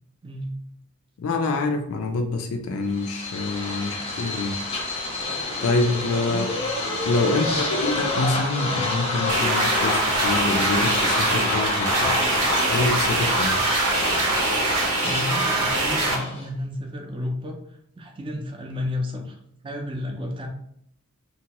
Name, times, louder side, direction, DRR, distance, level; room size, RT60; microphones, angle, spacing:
voice 1, 0.2-0.5 6.3-6.5 15.0-19.4 19.6-20.5, left 1 dB, 25° right, 2 dB, 0.4 m, -32 dB
voice 2, 1.2-4.6 5.6-6.5 7.0-12.2 12.7-13.5, left 3 dB, 75° left, 5 dB, 0.3 m, -26 dB
sound 1, 2.9-16.5, left 2 dB, 25° left, 0.6 m, -28 dB
sound 2, 9.3-16.1, right 2 dB, 85° right, 0.7 m, -23 dB
2.7 x 2.1 x 2.8 m, 0.71 s
head